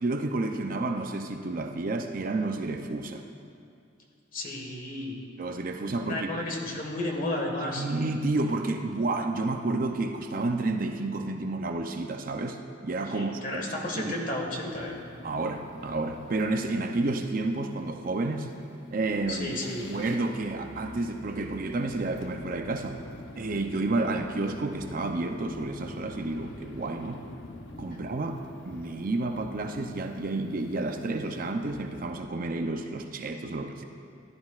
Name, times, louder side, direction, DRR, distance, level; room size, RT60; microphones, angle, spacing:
voice 1, 0.0-3.3 5.4-6.3 7.8-13.6 14.0-14.3 15.2-18.5 18.9-19.5 19.9-23.0 23.4-27.2 27.8-33.8, right 2 dB, 45° right, 5 dB, 0.5 m, -30 dB
voice 2, 4.3-5.2 6.0-7.9 13.1-15.0 19.3-19.9 27.9-28.0, left 1 dB, 45° left, 0 dB, 1.6 m, -33 dB
sound 1, 14.7-32.0, left 2 dB, 65° left, 0.7 m, -47 dB
15.0 x 11.5 x 2.4 m, 2.4 s
head